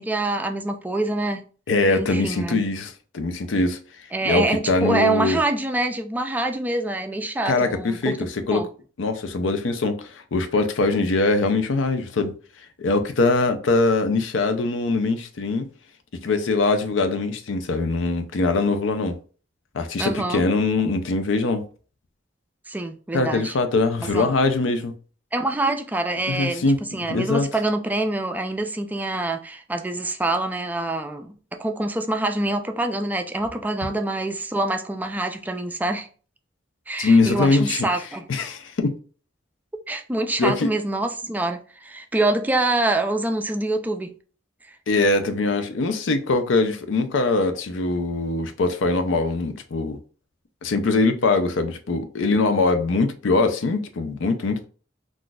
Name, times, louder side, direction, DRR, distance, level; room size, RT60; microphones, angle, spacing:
voice 1, 0.0-1.5 1.9-2.6 4.1-8.2 8.5-8.7 20.0-20.5 22.7-23.5 24.0-24.3 25.3-36.1 36.9-38.2 39.9-44.2, right 2 dB, 10° right, 0.3 m, -25 dB
voice 2, 1.7-3.8 4.2-5.4 7.5-8.2 8.5-8.7 9.0-12.3 12.8-15.7 16.2-19.2 19.7-21.6 23.1-24.9 26.3-27.5 37.0-37.9 38.3-38.9 40.4-40.7 44.9-50.0 50.6-54.7, left 3 dB, 80° left, 0.5 m, -22 dB
2.4 x 2.4 x 3.8 m
head